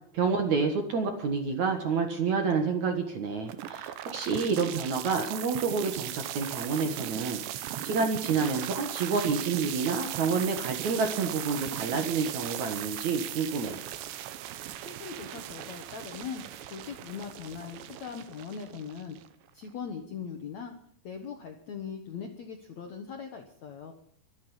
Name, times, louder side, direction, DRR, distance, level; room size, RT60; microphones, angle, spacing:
voice 1, 0.1-13.8, right 5 dB, 55° right, 5 dB, 2.2 m, -29 dB
sound 1, 3.5-19.5, right 12 dB, 80° right, 3.2 m, -38 dB
voice 2, 14.8-19.2 19.5-20.7 21.0-23.9, left 6 dB, 70° left, 5 dB, 1.8 m, -40 dB
24.0 x 9.6 x 5.6 m, 0.66 s
omnidirectional pair, 5.0 m